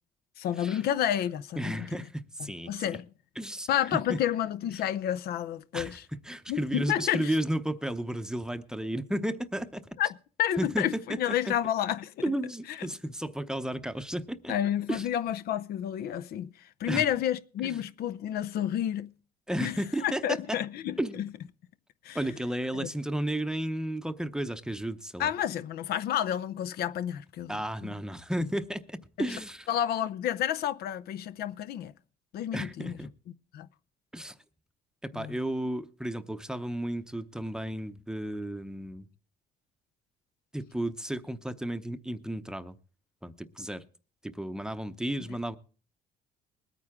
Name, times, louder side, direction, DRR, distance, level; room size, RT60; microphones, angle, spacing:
voice 1, 0.4-2.0 2.7-3.1 3.7-6.0 6.5-7.3 10.0-12.1 12.7-12.9 14.5-19.1 19.6-21.3 22.0-22.2 22.7-22.9 25.2-27.5 27.8-27.9 29.7-31.9 32.3-33.0 33.5-33.7 35.1-35.4, left 10 dB, 65° left, 0.6 m, -30 dB
voice 2, 1.6-2.9 3.4-4.2 5.7-9.8 10.6-11.5 12.2-14.5 14.9-15.1 16.9-17.0 17.6-17.7 19.5-20.6 21.0-21.3 22.1-25.3 27.5-29.7 32.5-33.1 34.1-34.3 35.0-39.1 40.5-42.8 43.2-43.8 44.2-45.6, right 1 dB, 5° right, 0.7 m, -33 dB
21.0 x 9.3 x 3.6 m
cardioid pair, 110°, 17 cm